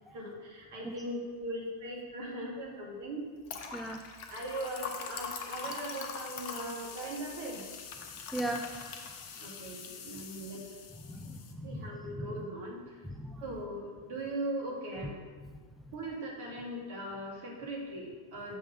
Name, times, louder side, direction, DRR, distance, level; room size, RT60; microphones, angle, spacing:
voice 1, 0.1-3.2 4.3-7.6 9.4-10.6 11.6-12.9 13.4-15.1 15.9-18.6, right 1 dB, 50° right, -2 dB, 2.0 m, -39 dB
sound 1, 3.4-11.5, left 5 dB, 45° left, 0.9 m, -43 dB
voice 2, 8.3-8.7 11.0-12.3 13.0-13.4 15.0-15.1 15.4-15.5, right 1 dB, ahead, 3 dB, 0.4 m, -38 dB
7.4 x 5.5 x 5.1 m, 1.5 s
figure-of-eight pair, 90°, 0 cm